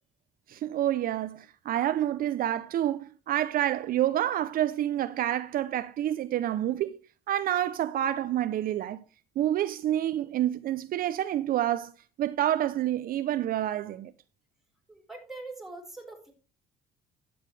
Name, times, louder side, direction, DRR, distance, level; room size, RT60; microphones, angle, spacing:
voice 1, 0.5-7.0 7.3-9.0 9.4-11.9 12.2-14.1, right 12 dB, 60° right, 0.6 m, -28 dB
voice 2, 14.9-16.3, right 2 dB, ahead, 4.6 m, -43 dB
12.0 x 8.8 x 3.3 m
cardioid pair, 110°, 17 cm